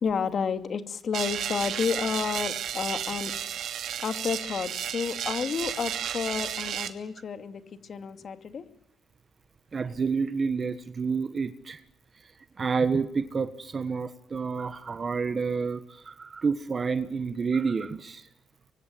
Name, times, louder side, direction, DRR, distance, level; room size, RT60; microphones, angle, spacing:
voice 1, 0.0-3.3 3.6-3.7 4.0-8.7, left 6 dB, 50° left, 9 dB, 2.5 m, -31 dB
sound 1, 1.1-6.9, right 9 dB, 70° right, 2.8 m, -33 dB
voice 2, 9.7-11.8 12.6-18.3, right 5 dB, 40° right, 11 dB, 1.4 m, -29 dB
25.0 x 23.5 x 9.2 m, 0.81 s
cardioid pair, 90°, 0 cm